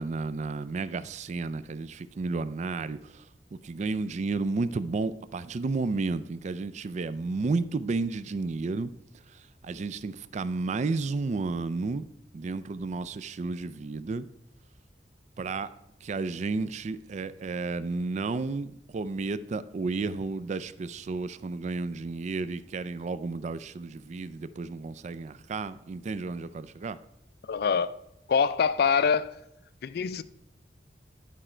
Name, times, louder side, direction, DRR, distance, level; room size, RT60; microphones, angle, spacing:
voice 1, 0.0-3.3 3.6-8.9 9.3-12.1 12.3-14.3 15.4-15.7 16.0-27.0, right 3 dB, 40° right, 0.3 m, -32 dB
voice 2, 27.5-27.9 28.3-29.4 29.8-30.2, left 6 dB, 60° left, 0.4 m, -24 dB
10.0 x 4.9 x 4.3 m
head